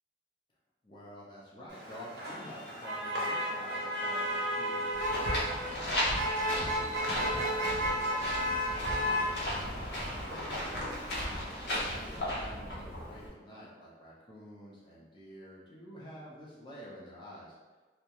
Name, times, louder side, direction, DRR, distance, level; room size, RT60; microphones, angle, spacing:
voice 1, 0.8-10.4 11.1-17.6, equal, 25° left, -6 dB, 0.4 m, -49 dB
Motor vehicle (road), 1.7-12.2, equal, 60° right, 0.7 m, -34 dB
sound 1, 4.9-13.3, left 1 dB, 65° left, 0.6 m, -35 dB
2.3 x 2.1 x 2.8 m, 1.3 s
head